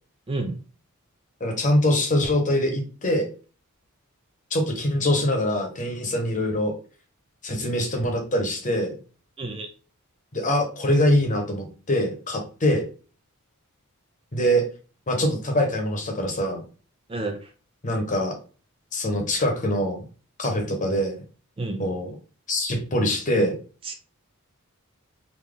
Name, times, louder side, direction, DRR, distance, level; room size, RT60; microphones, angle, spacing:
voice 1, 0.3-0.6 9.4-9.7 17.1-17.4 21.6-21.9 23.9-24.0, right 2 dB, 25° right, 5 dB, 0.4 m, -29 dB
voice 2, 1.4-3.3 4.5-6.7 7.4-8.9 10.3-12.8 14.3-14.6 15.1-16.6 17.8-18.4 18.9-20.0 20.4-21.2 21.8-22.1 22.5-23.6, left 1 dB, 35° left, 3 dB, 1.1 m, -23 dB
3.8 x 2.9 x 3.4 m, 0.37 s
head